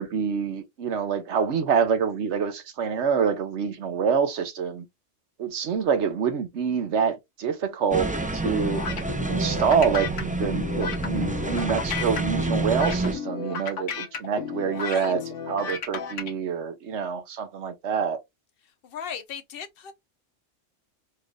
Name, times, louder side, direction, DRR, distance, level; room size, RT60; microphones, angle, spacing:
voice 1, 0.0-4.8 5.4-8.8 9.3-15.2 15.5-18.2, right 6 dB, 70° right, 1.0 m, -26 dB
sound 1, 7.9-13.1, right 2 dB, 15° right, 0.3 m, -28 dB
sound 2, 8.5-16.3, left 6 dB, 75° left, 1.2 m, -33 dB
voice 2, 14.7-15.1 18.8-19.9, left 7 dB, 55° left, 0.8 m, -37 dB
4.4 x 2.4 x 3.2 m
omnidirectional pair, 1.3 m